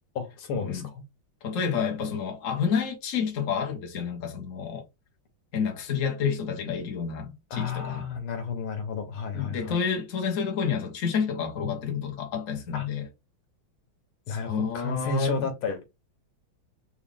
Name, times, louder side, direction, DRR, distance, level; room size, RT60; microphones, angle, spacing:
voice 1, 0.2-1.0 7.5-9.8 12.7-12.9 14.3-15.8, left 4 dB, 90° left, 2.0 m, -32 dB
voice 2, 1.4-4.8 5.5-8.0 9.3-13.1 14.3-15.5, left 6 dB, 45° left, 1.3 m, -29 dB
4.9 x 2.6 x 3.5 m
omnidirectional pair, 2.3 m